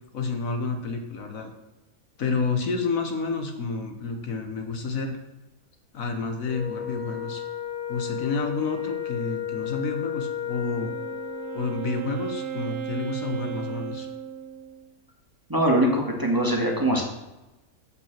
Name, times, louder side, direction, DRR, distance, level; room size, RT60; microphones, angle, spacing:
voice 1, 0.1-1.5 2.2-5.2 5.9-7.4 7.9-10.9 11.5-14.1, left 4 dB, 65° left, 5 dB, 1.4 m, -29 dB
Wind instrument woodwind instrument, 6.4-12.0, left 9 dB, 45° left, 3.2 m, -33 dB
Wind instrument woodwind instrument 2, 10.6-14.9, right 8 dB, 60° right, 0.8 m, -36 dB
voice 2, 15.5-17.0, right 1 dB, 15° right, -1 dB, 1.6 m, -22 dB
6.6 x 6.0 x 7.3 m, 1.0 s
omnidirectional pair, 1.6 m